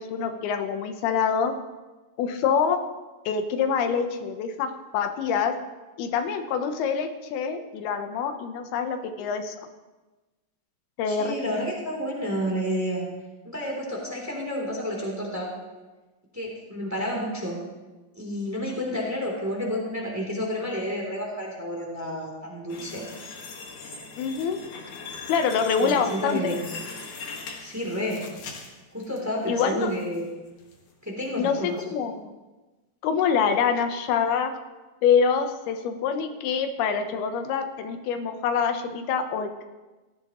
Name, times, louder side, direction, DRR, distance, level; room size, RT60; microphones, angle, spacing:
voice 1, 0.0-1.5 2.2-2.8 3.3-5.6 6.0-9.6 11.0-11.5 24.2-24.6 25.3-26.6 29.5-29.9 31.4-32.3 33.0-34.5 35.0-39.7, left 6 dB, 90° left, 7 dB, 3.0 m, -25 dB
voice 2, 11.1-13.1 13.4-15.5 16.3-17.6 18.1-23.0 25.8-26.7 27.6-28.3 28.9-30.3 31.0-31.8, equal, 5° right, -2 dB, 2.6 m, -30 dB
sound 1, 22.7-29.2 29.6-30.2 30.6-30.8 31.2-31.3, left 4 dB, 60° left, 3.0 m, -40 dB
17.0 x 14.5 x 3.1 m, 1.2 s
omnidirectional pair, 4.4 m